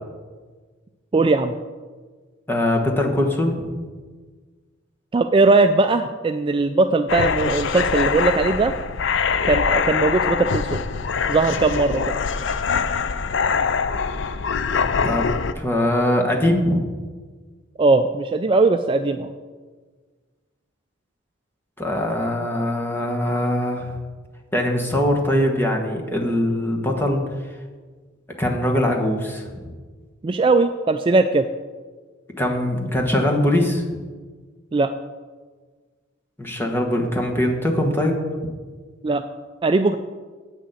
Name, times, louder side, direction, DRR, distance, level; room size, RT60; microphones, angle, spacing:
voice 1, 1.1-1.5 5.1-8.7 9.4-10.8 11.3-12.0 17.8-19.3 30.2-31.5 34.7-34.9 39.0-39.2 39.6-40.0, right 3 dB, 25° right, 8 dB, 0.3 m, -19 dB
voice 2, 2.5-3.7 15.0-15.3 15.5-16.8 21.8-24.0 24.5-27.2 28.4-29.6 32.4-33.8 36.4-38.2, left 1 dB, 10° left, 1 dB, 1.3 m, -22 dB
sound 1, 7.1-15.5, left 5 dB, 65° left, 0.5 m, -23 dB
8.1 x 6.4 x 7.9 m, 1.4 s
head